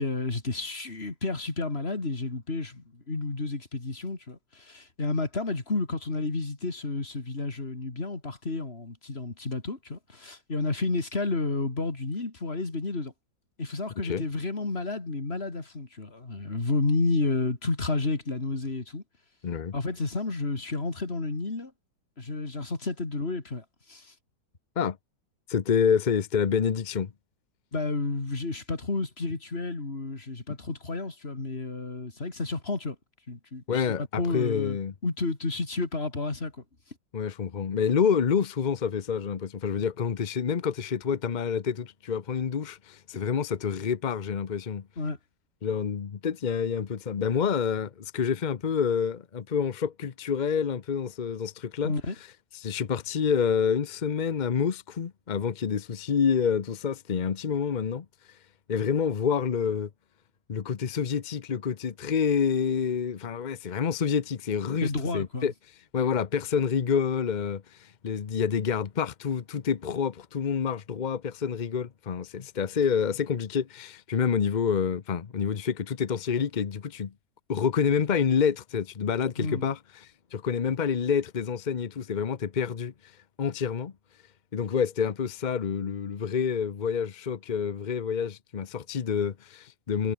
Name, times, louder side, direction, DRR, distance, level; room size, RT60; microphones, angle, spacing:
voice 1, 0.0-13.1 13.6-19.0 19.7-21.7 22.2-24.1 27.7-33.0 33.3-36.6 45.0-45.2 51.8-52.1 64.8-65.5 79.4-79.7, left 3 dB, 35° left, 3.2 m, -31 dB
voice 2, 19.4-19.7 24.8-25.0 25.5-27.1 33.7-34.9 37.1-44.9 45.6-51.9 52.5-58.1 58.7-59.9 60.5-65.5 65.9-77.1 77.5-82.9 83.4-83.9 84.5-90.1, left 7 dB, 55° left, 0.5 m, -28 dB
omnidirectional pair, 2.0 m